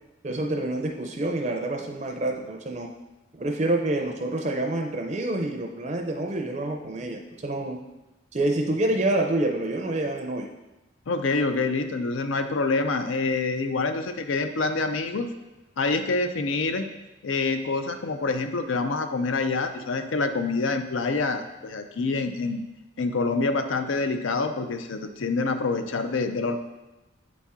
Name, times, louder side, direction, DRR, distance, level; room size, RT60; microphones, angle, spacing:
voice 1, 0.2-2.9 3.3-7.8 8.3-10.5, right 2 dB, 35° right, 2 dB, 0.5 m, -27 dB
voice 2, 11.1-15.3 15.8-16.9 17.2-22.6 23.0-26.6, left 3 dB, 80° left, 8 dB, 0.5 m, -26 dB
8.1 x 4.2 x 3.6 m, 1.0 s
head